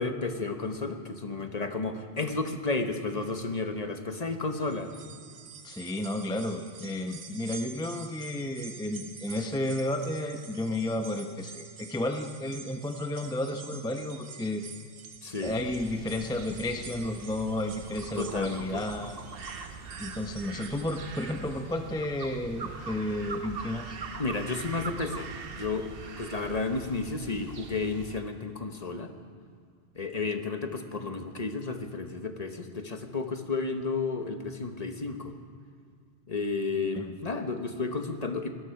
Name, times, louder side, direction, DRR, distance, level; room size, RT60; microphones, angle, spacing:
voice 1, 0.0-4.9 15.2-15.6 18.2-18.8 24.2-25.3 25.6-25.9 26.2-29.1 29.9-35.3 36.3-38.5, left 3 dB, 40° left, 6 dB, 1.1 m, -32 dB
sound 1, 4.6-21.9 22.3-22.4 23.5-23.6, right 6 dB, 85° right, 1.3 m, -48 dB
voice 2, 5.6-14.6 15.4-19.2 20.0-24.0 36.9-37.0, left 1 dB, 5° left, 5 dB, 0.6 m, -32 dB
sound 2, 15.4-28.2, right 5 dB, 60° right, 1.1 m, -42 dB
18.5 x 12.5 x 5.8 m, 2.2 s
omnidirectional pair, 1.1 m